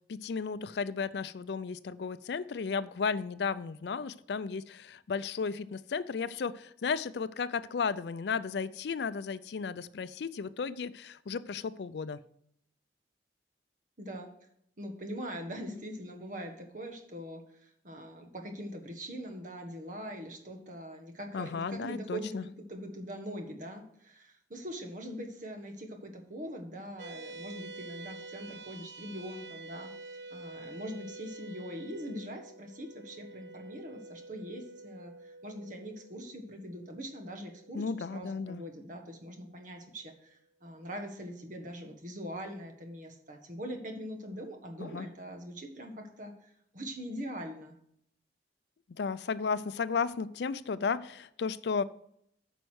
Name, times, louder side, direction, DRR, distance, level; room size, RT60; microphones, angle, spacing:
voice 1, 0.1-12.2 21.3-22.4 37.7-38.6 44.8-45.1 48.9-51.8, left 5 dB, 70° left, 16 dB, 0.4 m, -34 dB
voice 2, 14.0-14.3 14.8-47.7, equal, 45° right, 4 dB, 1.5 m, -42 dB
sound 1, 27.0-39.6, right 3 dB, 65° right, 0.5 m, -48 dB
9.1 x 5.3 x 6.3 m, 0.71 s
head